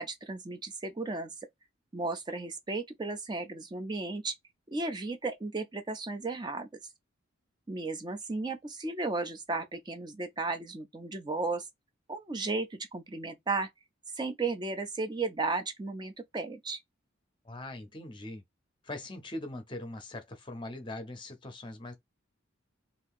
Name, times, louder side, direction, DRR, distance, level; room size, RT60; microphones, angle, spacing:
voice 1, 0.0-1.3 1.9-4.4 4.7-6.7 7.7-11.7 12.1-13.7 14.1-16.8, right 3 dB, 20° right, 0.4 m, -34 dB
voice 2, 17.4-18.4 18.8-21.9, left 1 dB, 25° left, 0.7 m, -41 dB
2.7 x 2.5 x 3.5 m
head